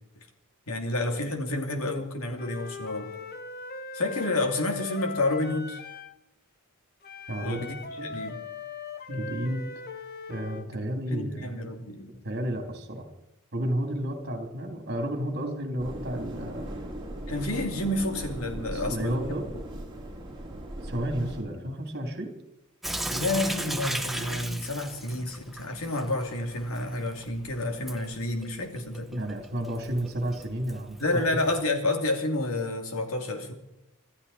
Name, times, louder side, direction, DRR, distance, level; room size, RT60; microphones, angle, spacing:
voice 1, 0.7-3.1 3.9-5.8 7.4-8.4 11.1-12.1 17.3-19.4 23.1-29.1 31.0-33.5, left 2 dB, 75° left, 4 dB, 2.6 m, -29 dB
Wind instrument woodwind instrument, 2.4-6.2 7.0-10.7, left 4 dB, 45° left, 1.1 m, -39 dB
voice 2, 7.3-7.7 8.0-8.2 9.1-9.6 10.3-11.7 12.2-13.1 13.5-16.7 18.7-19.5 20.8-22.3 29.1-31.0, right 1 dB, 50° right, 4 dB, 3.0 m, -32 dB
sound 1, 15.8-21.4, right 1 dB, 20° right, 4.6 m, -38 dB
Sink (filling or washing) / Drip, 22.8-31.7, right 1 dB, ahead, 0.9 m, -37 dB
25.5 x 13.0 x 4.2 m, 0.87 s
head